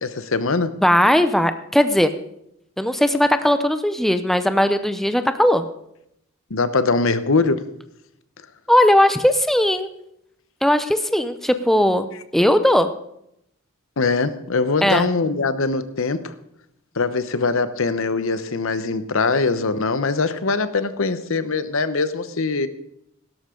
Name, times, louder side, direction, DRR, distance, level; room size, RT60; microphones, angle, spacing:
voice 1, 0.0-0.7 6.5-7.6 14.0-16.3 17.0-22.7, left 4 dB, 70° left, 12 dB, 0.9 m, -22 dB
voice 2, 0.8-2.1 2.8-5.6 8.7-9.9 10.6-12.9 14.8-15.1, left 1 dB, ahead, 10 dB, 0.6 m, -18 dB
16.5 x 12.5 x 3.8 m, 0.78 s
head